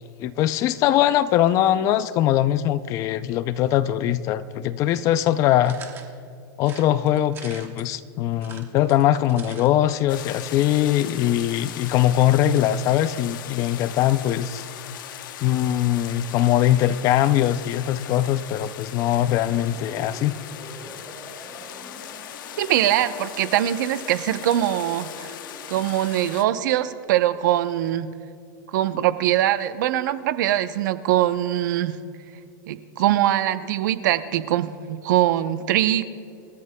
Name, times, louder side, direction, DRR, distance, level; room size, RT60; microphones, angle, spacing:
voice 1, 0.2-5.8 6.6-14.6 15.4-20.4, left 12 dB, 30° left, 15 dB, 0.3 m, -21 dB
sound 1, 5.6-6.1 6.6-7.9 8.3-9.7 10.0-10.1 10.3-10.4, right 7 dB, 20° right, 1.0 m, -43 dB
sound 2, 10.1-26.4, left 11 dB, 70° left, 0.8 m, -39 dB
sound 3, 19.4-25.8, equal, 5° left, 2.4 m, -45 dB
voice 2, 22.6-25.3 25.7-28.1 28.7-32.0 32.7-36.0, right 13 dB, 60° right, 12 dB, 0.7 m, -22 dB
27.5 x 14.5 x 2.2 m, 2.4 s
supercardioid pair, 165°, 11 cm